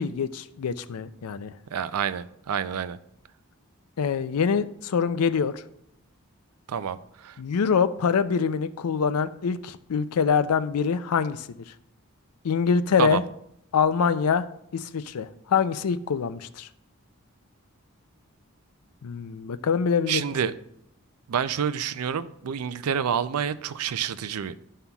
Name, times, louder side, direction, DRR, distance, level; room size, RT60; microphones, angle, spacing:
voice 1, 0.0-1.5 4.0-5.6 7.4-11.5 12.4-13.2 13.7-14.5 14.7-16.7 19.0-20.2, left 6 dB, 85° left, 13 dB, 0.4 m, -25 dB
voice 2, 1.7-3.0 6.7-7.4 13.0-13.2 20.1-20.5 21.3-24.5, right 7 dB, 90° right, 14 dB, 0.4 m, -28 dB
12.5 x 5.6 x 2.3 m, 0.74 s
head